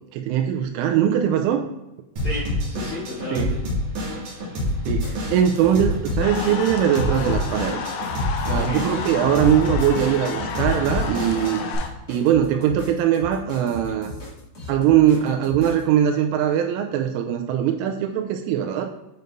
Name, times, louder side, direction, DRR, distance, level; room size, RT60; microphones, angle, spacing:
voice 1, 0.1-1.7 3.3-3.6 4.9-7.8 8.5-11.6 12.1-14.1 14.7-18.8, right 9 dB, 85° right, 4 dB, 3.1 m, -21 dB
voice 2, 2.2-3.6 8.5-8.8 15.1-15.4, left 1 dB, 75° left, -7 dB, 1.7 m, -33 dB
Drum kit / Drum, 2.2-11.8, left 1 dB, 50° right, 2.6 m, -27 dB
sound 1, 4.7-15.8, left 3 dB, 40° left, 1.3 m, -38 dB
sound 2, 6.2-11.9, left 5 dB, 90° left, 3.4 m, -32 dB
9.5 x 5.3 x 2.6 m, 0.92 s
omnidirectional pair, 5.8 m